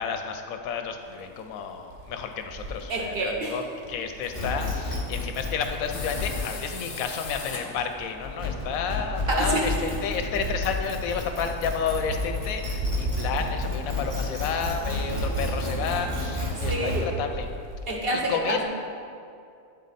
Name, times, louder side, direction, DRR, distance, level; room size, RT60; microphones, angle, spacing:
voice 1, 0.0-3.6 3.9-17.5 18.3-18.6, left 6 dB, 90° left, 6 dB, 1.1 m, -31 dB
sound 1, 1.5-4.2 5.9-6.8 7.1-8.0 8.5-16.2 16.9-18.0, right 1 dB, 65° right, 0.5 m, -35 dB
voice 2, 2.9-3.7 9.3-9.9 14.9-15.3 16.5-17.1 17.9-18.7, right 2 dB, 50° right, -1 dB, 0.9 m, -29 dB
sound 2, 4.2-17.0, left 2 dB, 20° right, 1.6 m, -32 dB
sound 3, 5.9-8.1, left 4 dB, 50° left, 0.8 m, -38 dB
9.5 x 4.1 x 4.1 m, 2.5 s
omnidirectional pair, 1.4 m